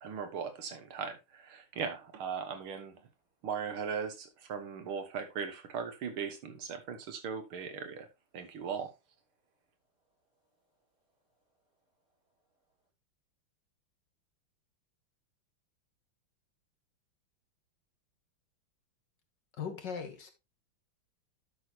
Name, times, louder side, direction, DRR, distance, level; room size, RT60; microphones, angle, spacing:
voice 1, 0.0-3.0 3.4-8.1 8.3-8.9, right 6 dB, 80° right, 2.1 m, -38 dB
voice 2, 10.0-11.6 12.0-12.6, right 1 dB, 40° right, 4.9 m, -81 dB
voice 3, 19.6-20.3, left 6 dB, 60° left, 1.7 m, -38 dB
11.5 x 6.3 x 2.9 m
omnidirectional pair, 2.3 m